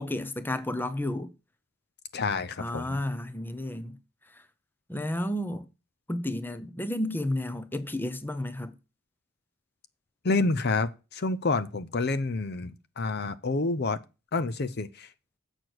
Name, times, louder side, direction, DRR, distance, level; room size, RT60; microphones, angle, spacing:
voice 1, 0.0-1.3 2.6-4.0 4.9-5.6 6.1-8.7, left 1 dB, 10° left, 0.7 m, -32 dB
voice 2, 2.1-3.0 10.2-14.0 14.3-15.1, left 3 dB, 50° left, 0.6 m, -28 dB
7.9 x 6.7 x 6.1 m
head